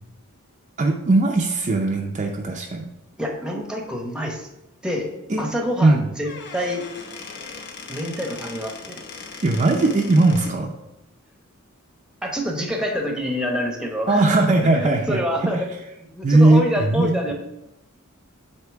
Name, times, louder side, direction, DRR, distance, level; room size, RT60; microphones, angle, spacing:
voice 1, 0.8-2.9 5.3-5.4 5.8-6.0 9.4-10.7 14.1-15.2 16.2-17.1, right 2 dB, 35° right, 1 dB, 0.5 m, -18 dB
voice 2, 3.2-4.5 4.8-5.1 5.4-6.9 7.9-9.0 12.2-15.7 16.0-17.3, equal, 5° right, 2 dB, 0.8 m, -27 dB
Squeak / Wood, 6.1-10.6, left 4 dB, 55° left, 0.7 m, -38 dB
8.0 x 2.9 x 4.6 m, 0.87 s
head